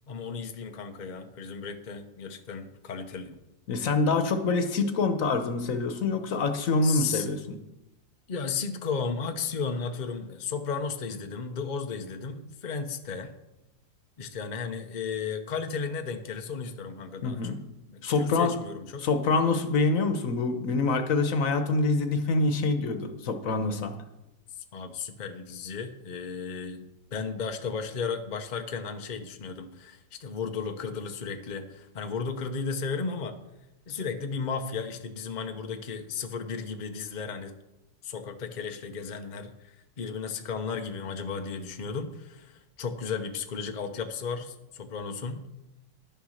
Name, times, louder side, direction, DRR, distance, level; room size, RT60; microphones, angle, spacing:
voice 1, 0.1-3.4 6.8-7.3 8.3-13.3 14.2-17.4 17.9-19.0 24.6-33.3 33.9-37.5 38.0-45.4, left 5 dB, 85° left, 6 dB, 0.4 m, -34 dB
voice 2, 3.7-7.6 17.2-17.6 18.0-18.5 19.0-23.9, left 3 dB, 50° left, 8 dB, 1.1 m, -26 dB
11.0 x 6.9 x 6.4 m, 0.95 s
omnidirectional pair, 2.1 m